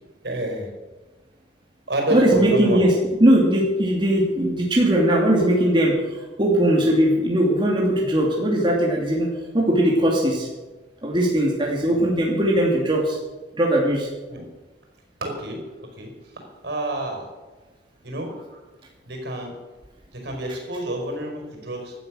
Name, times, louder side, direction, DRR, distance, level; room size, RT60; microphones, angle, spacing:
voice 1, 0.2-0.7 1.9-2.9 11.9-12.0 14.3-14.4 15.2-15.6 16.0-16.1 16.6-17.3 18.0-18.6 19.1-19.5 20.1-21.9, right 1 dB, 65° right, 3 dB, 4.9 m, -28 dB
voice 2, 2.1-2.9 3.2-9.3 9.5-10.5 11.0-13.2 13.5-14.1, right 1 dB, 25° right, -3 dB, 2.7 m, -19 dB
17.0 x 12.0 x 6.4 m, 1.2 s
head